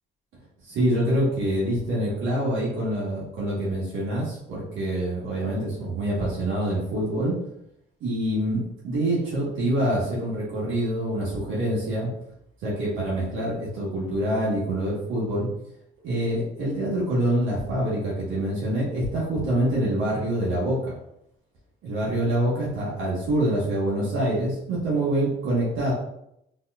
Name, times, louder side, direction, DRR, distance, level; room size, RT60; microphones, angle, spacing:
voice 1, 0.7-7.3 8.0-12.1 12.6-15.5 16.0-20.9 21.8-25.9, right 1 dB, 80° right, -6 dB, 1.4 m, -26 dB
4.1 x 3.0 x 2.4 m, 0.79 s
cardioid pair, 90°, 20 cm